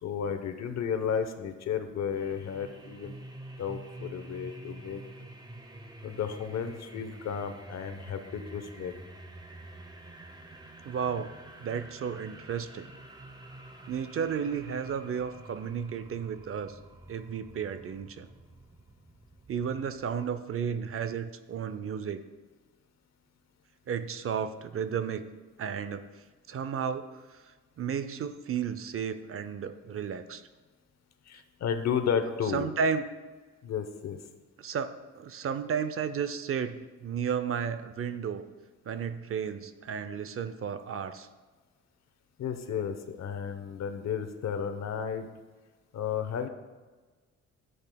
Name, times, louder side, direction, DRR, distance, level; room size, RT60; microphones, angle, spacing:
voice 1, 0.0-3.2 3.6-5.0 6.0-9.0 31.3-32.7 33.6-34.2 42.4-45.3 45.9-46.5, left 7 dB, 60° left, 8 dB, 0.9 m, -33 dB
sound 1, 2.1-20.0, right 1 dB, 15° right, 0.9 m, -48 dB
voice 2, 10.8-11.3 11.6-12.9 13.9-16.8 17.1-18.3 19.5-22.2 23.9-25.3 25.6-30.4 32.5-33.0 34.6-38.4 38.9-41.3, right 7 dB, 45° right, 11 dB, 0.6 m, -33 dB
12.0 x 7.9 x 2.3 m, 1.3 s
cardioid pair, 90°, 30 cm